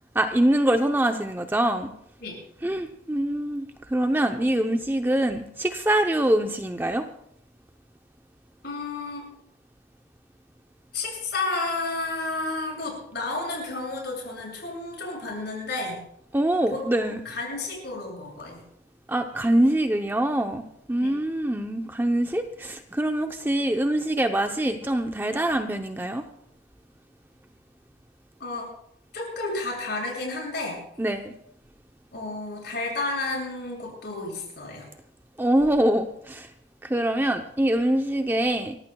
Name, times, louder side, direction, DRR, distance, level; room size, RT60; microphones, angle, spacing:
voice 1, 0.1-1.9 2.6-7.1 16.3-17.2 19.1-20.6 20.9-26.3 31.0-31.3 35.4-36.5 36.8-38.8, right 1 dB, 10° right, 6 dB, 0.6 m, -24 dB
voice 2, 8.6-9.2 10.9-16.0 16.7-16.8 17.2-18.6 21.0-21.2 28.4-28.7 29.1-30.8 32.1-34.9, left 2 dB, 60° left, -1 dB, 6.8 m, -31 dB
28.5 x 15.0 x 2.3 m, 0.71 s
head